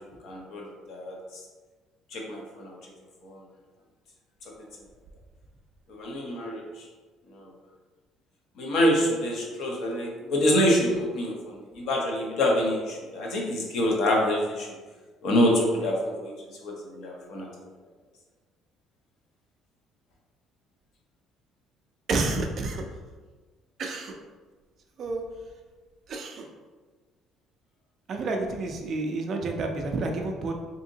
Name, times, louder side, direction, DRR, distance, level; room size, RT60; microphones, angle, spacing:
voice 1, 0.2-1.2 2.1-2.8 3.2-3.4 5.9-6.6 7.4-7.5 8.6-14.7 15.2-16.3 16.6-17.5, equal, 50° left, -1 dB, 0.7 m, -26 dB
voice 2, 22.1-22.8 23.8-24.2 25.0-25.2 26.1-26.5 28.1-30.5, right 3 dB, 35° right, 3 dB, 0.3 m, -29 dB
3.6 x 2.8 x 2.7 m, 1.4 s
cardioid pair, 180°, 0 cm